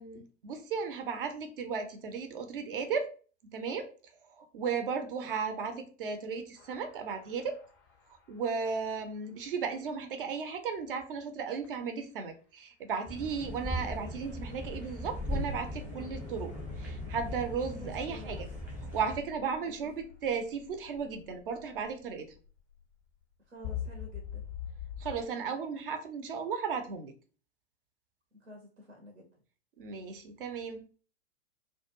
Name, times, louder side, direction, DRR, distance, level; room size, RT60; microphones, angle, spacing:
voice 1, 0.0-3.1 3.5-3.9 4.4-7.6 8.3-16.5 16.8-18.5 18.9-22.3 25.0-27.1 29.8-30.8, right 5 dB, 50° right, 7 dB, 0.5 m, -35 dB
sound 1, 6.6-9.1 11.6-11.7 18.3-25.2, left 9 dB, 25° left, 0.3 m, -45 dB
sound 2, 13.0-19.2, left 1 dB, 5° right, 0.7 m, -38 dB
voice 2, 17.7-18.4 19.6-19.7 23.5-24.4 28.3-29.3, equal, 80° right, 1 dB, 0.7 m, -50 dB
2.2 x 2.1 x 2.9 m, 0.39 s
figure-of-eight pair, 105°, 35 cm